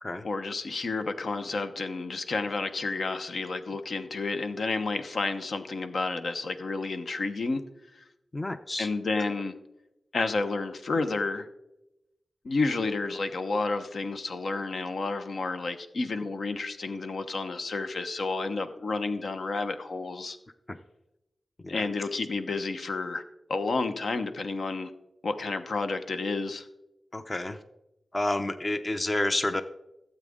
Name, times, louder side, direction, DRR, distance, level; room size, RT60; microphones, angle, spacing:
voice 1, 0.2-7.6 8.8-9.5 10.1-11.5 12.4-20.4 21.7-23.2 23.5-24.9 25.2-26.7, left 3 dB, 75° left, 8 dB, 1.0 m, -30 dB
voice 2, 8.3-8.9 21.6-21.8 27.1-27.6 28.1-29.6, left 1 dB, 30° left, 10 dB, 0.6 m, -29 dB
16.5 x 8.1 x 3.7 m, 0.91 s
wide cardioid pair, 100°, 0 cm